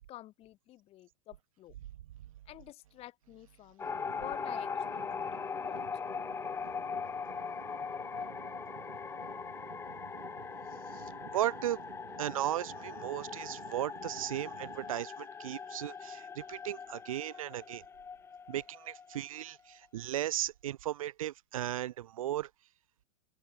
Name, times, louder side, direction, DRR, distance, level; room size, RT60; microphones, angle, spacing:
voice 1, 0.0-1.8 2.5-5.8, left 15 dB, 35° left, 7.3 m, -49 dB
sound 1, 3.8-19.7, left 6 dB, 15° left, 1.2 m, -41 dB
sound 2, 3.8-14.9, right 22 dB, 55° right, 2.8 m, -52 dB
voice 2, 11.3-11.8 12.2-17.8 18.5-22.5, right 12 dB, 75° right, 1.0 m, -36 dB
open air
hypercardioid pair, 125°, 18 cm